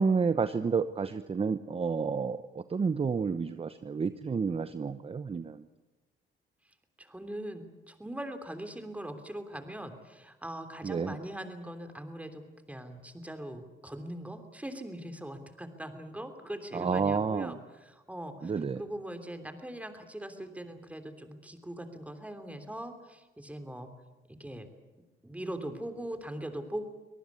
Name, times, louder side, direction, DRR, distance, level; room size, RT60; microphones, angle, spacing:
voice 1, 0.0-5.6 10.8-11.1 16.7-17.5 18.4-18.8, right 5 dB, 30° right, 12 dB, 0.9 m, -30 dB
voice 2, 7.0-12.4 12.7-23.9 24.4-24.7 25.2-26.9, right 1 dB, 5° right, 8 dB, 3.2 m, -41 dB
24.5 x 18.5 x 8.5 m, 1.1 s
cardioid pair, 90°, 20 cm